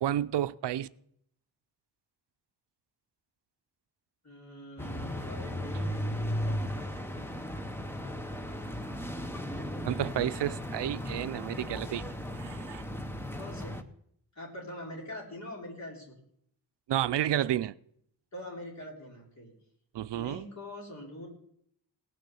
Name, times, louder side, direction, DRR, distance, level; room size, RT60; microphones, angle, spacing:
voice 1, 0.0-0.9 9.6-12.0 12.3-12.9 16.9-17.7 19.9-20.5, right 12 dB, 80° right, 0.5 m, -31 dB
voice 2, 4.2-7.3 13.4-13.8 14.4-16.1 18.3-19.5 20.1-21.3, left 1 dB, 40° left, 3.6 m, -44 dB
sound 1, 4.8-13.8, equal, 5° left, 0.6 m, -36 dB
18.0 x 6.6 x 6.9 m
wide cardioid pair, 180°, 41 cm